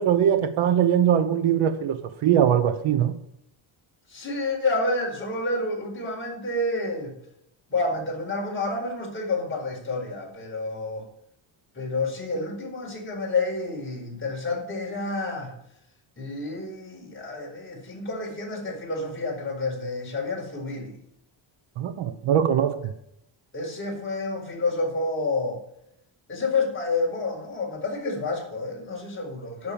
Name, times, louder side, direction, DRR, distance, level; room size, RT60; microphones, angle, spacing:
voice 1, 0.0-3.2 21.8-22.8, right 9 dB, 80° right, 1.2 m, -21 dB
voice 2, 4.1-7.1 7.7-11.0 11.7-15.5 16.2-21.0 23.5-25.6 26.3-29.7, left 2 dB, 25° left, 4.6 m, -29 dB
10.5 x 6.9 x 7.1 m
cardioid pair, 155°, 48 cm